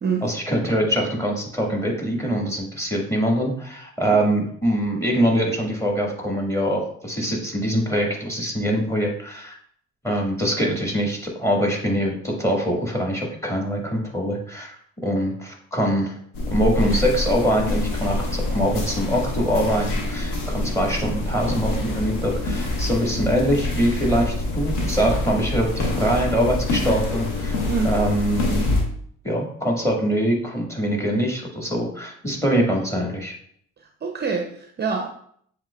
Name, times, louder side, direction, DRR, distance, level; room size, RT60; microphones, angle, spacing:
voice 1, 0.2-9.6 10.0-14.8 15.0-16.2 16.5-27.6 27.8-28.7 29.2-33.3, equal, 10° left, 0 dB, 1.7 m, -23 dB
sound 1, 16.3-28.8, left 2 dB, 85° left, 1.0 m, -26 dB
voice 2, 33.8-35.1, right 5 dB, 30° right, 3 dB, 0.6 m, -26 dB
7.3 x 3.0 x 2.2 m, 0.63 s
supercardioid pair, 60°, 32 cm